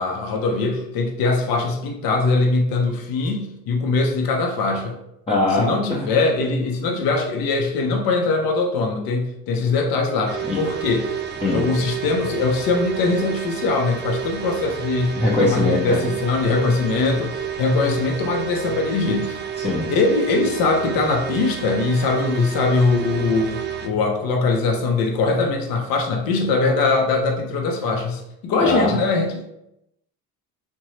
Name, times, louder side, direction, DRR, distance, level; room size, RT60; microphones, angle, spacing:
voice 1, 0.0-5.0 5.5-11.2 11.5-19.4 19.9-29.4, left 3 dB, 65° left, 2 dB, 0.7 m, -21 dB
voice 2, 5.3-6.0 10.5-10.6 11.4-11.6 15.2-16.0 19.6-19.9 28.6-29.0, left 2 dB, 15° left, -5 dB, 0.6 m, -21 dB
sound 1, 10.3-23.9, right 8 dB, 30° right, 0.4 m, -30 dB
2.7 x 2.2 x 3.1 m, 0.82 s
supercardioid pair, 85°, 37 cm